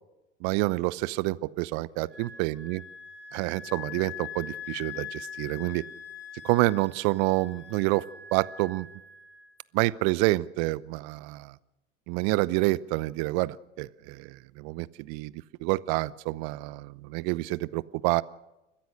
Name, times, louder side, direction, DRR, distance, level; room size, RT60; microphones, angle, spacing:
voice 1, 0.4-2.8 3.3-5.8 6.4-8.0 8.3-8.9 9.7-11.5 12.1-15.3 15.6-18.2, right 21 dB, 55° right, 19 dB, 0.9 m, -28 dB
Wind instrument woodwind instrument, 2.1-9.5, left 7 dB, 70° left, 5.5 m, -43 dB
30.0 x 15.0 x 6.5 m, 1.0 s
hypercardioid pair, 80°, 37 cm